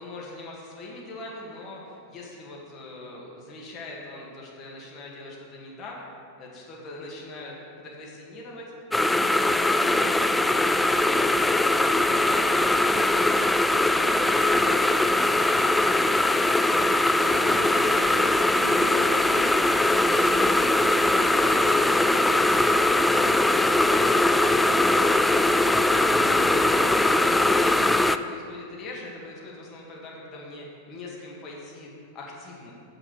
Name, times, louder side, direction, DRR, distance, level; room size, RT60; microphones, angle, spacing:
voice 1, 0.0-6.0 6.4-8.7 9.0-13.5 13.8-17.1 23.2-25.8 26.4-32.7, left 2 dB, 35° left, -3 dB, 2.0 m, -41 dB
sound 1, 8.9-28.2, left 2 dB, 5° left, 0.3 m, -21 dB
voice 2, 17.2-21.9 25.9-26.7, right 1 dB, 45° right, -2 dB, 2.4 m, -39 dB
7.3 x 6.7 x 6.9 m, 2.4 s
hypercardioid pair, 100°, 0 cm